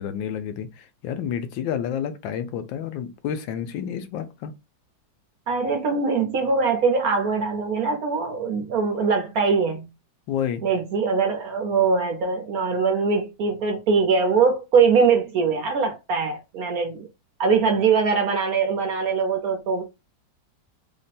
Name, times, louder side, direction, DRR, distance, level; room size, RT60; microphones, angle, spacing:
voice 1, 0.0-4.5 10.3-10.6, left 8 dB, 85° left, 1.4 m, -30 dB
voice 2, 5.5-9.9 10.6-17.1 17.4-19.8, right 5 dB, 65° right, 1.0 m, -22 dB
3.4 x 2.2 x 4.0 m
omnidirectional pair, 2.1 m